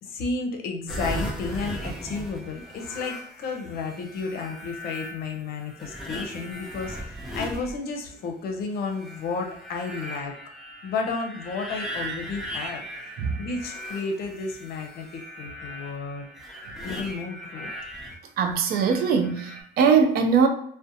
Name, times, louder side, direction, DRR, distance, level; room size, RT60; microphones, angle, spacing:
voice 1, 0.0-10.4 10.8-12.8 13.4-16.3 16.8-17.7, left 4 dB, 65° left, 3 dB, 0.6 m, -32 dB
sound 1, 0.9-8.3 8.8-18.2 18.6-19.6, equal, ahead, 0.6 m, -38 dB
voice 2, 18.4-20.5, right 6 dB, 65° right, 5 dB, 0.4 m, -21 dB
2.6 x 2.1 x 2.5 m, 0.66 s
cardioid pair, 110°, 17 cm